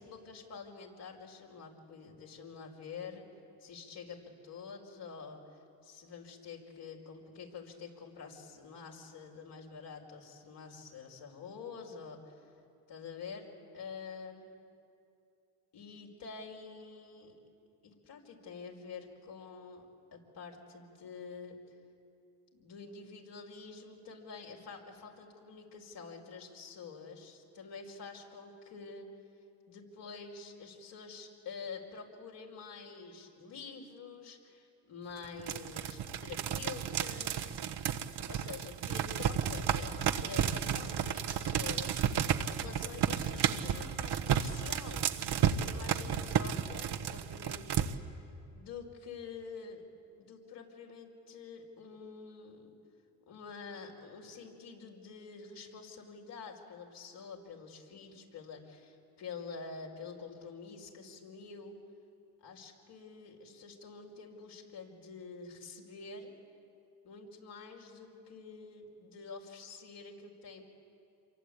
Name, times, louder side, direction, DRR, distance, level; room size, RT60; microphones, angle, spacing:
voice 1, 0.0-3.2 3.6-5.4 5.8-12.5 12.9-13.5 13.7-14.5 15.7-17.4 17.8-19.8 20.1-21.6 22.6-29.1 29.7-37.6 38.2-45.1 45.5-48.2 48.5-49.8 50.2-52.7 53.3-61.8 62.4-66.3 67.0-70.6, left 5 dB, 65° left, 1 dB, 5.2 m, -47 dB
sound 1, 35.2-47.9, right 9 dB, 60° right, 1.4 m, -32 dB
27.5 x 23.5 x 8.8 m, 2.6 s
supercardioid pair, 65°, 45 cm